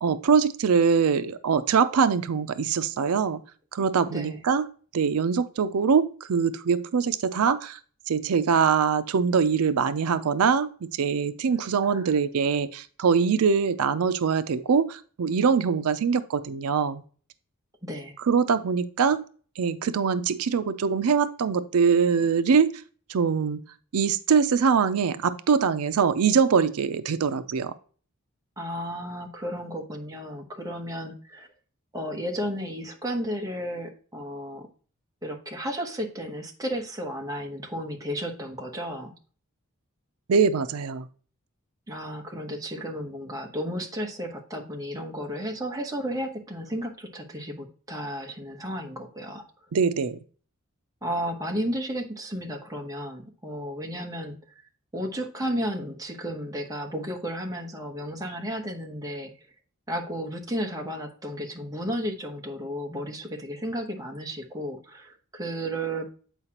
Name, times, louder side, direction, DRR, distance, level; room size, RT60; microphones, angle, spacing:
voice 1, 0.0-3.4 3.7-4.7 4.9-7.8 8.1-17.0 18.2-19.2 19.6-22.8 23.1-23.6 23.9-27.7 40.3-41.1 49.7-50.2, right 6 dB, 90° right, 12 dB, 0.5 m, -23 dB
voice 2, 4.1-4.4 11.5-11.6 11.8-12.1 17.8-18.2 28.6-31.5 31.9-34.7 35.2-39.1 41.9-49.4 51.0-54.4 54.9-59.3 59.9-66.1, equal, 15° right, 2 dB, 1.0 m, -33 dB
8.1 x 4.8 x 2.9 m, 0.41 s
head